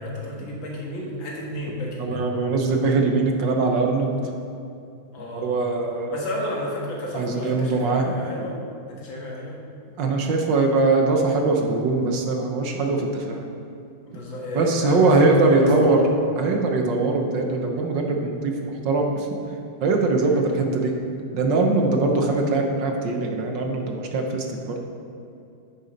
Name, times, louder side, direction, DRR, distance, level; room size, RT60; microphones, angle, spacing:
voice 1, 0.0-2.3 5.1-5.5 6.1-8.6 8.9-9.6 14.1-16.1 20.2-20.4, left 1 dB, 65° left, -2 dB, 2.2 m, -32 dB
voice 2, 2.0-4.1 5.3-6.2 7.1-8.0 10.0-13.4 14.5-16.0 16.3-19.3 19.8-20.9 21.3-24.8, right 3 dB, 65° right, 2 dB, 1.4 m, -21 dB
9.1 x 6.9 x 5.2 m, 2.6 s
omnidirectional pair, 2.3 m